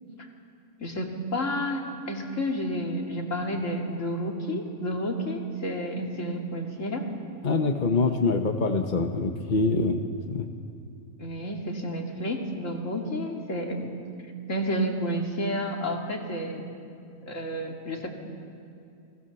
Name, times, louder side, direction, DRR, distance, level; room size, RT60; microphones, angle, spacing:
voice 1, 0.8-7.1 11.2-13.9 14.5-16.7 17.3-18.1, equal, 65° left, 1 dB, 2.8 m, -30 dB
voice 2, 7.4-10.0 10.3-10.5, left 3 dB, 35° left, 5 dB, 1.2 m, -24 dB
29.5 x 21.5 x 7.0 m, 2.5 s
omnidirectional pair, 1.4 m